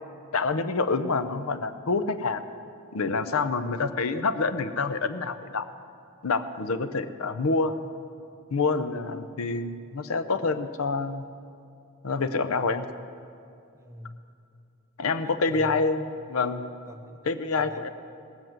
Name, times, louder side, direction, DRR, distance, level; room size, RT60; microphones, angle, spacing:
voice 1, 0.3-2.4 2.9-5.6 6.2-7.7 8.5-11.2 12.0-12.9 15.0-16.0 16.3-16.6 17.2-17.9, left 4 dB, 70° left, 11 dB, 0.6 m, -27 dB
voice 2, 13.7-14.2 15.2-15.7 16.9-17.2 17.5-17.9, right 1 dB, 15° right, 4 dB, 0.8 m, -43 dB
18.0 x 7.9 x 7.5 m, 2.5 s
head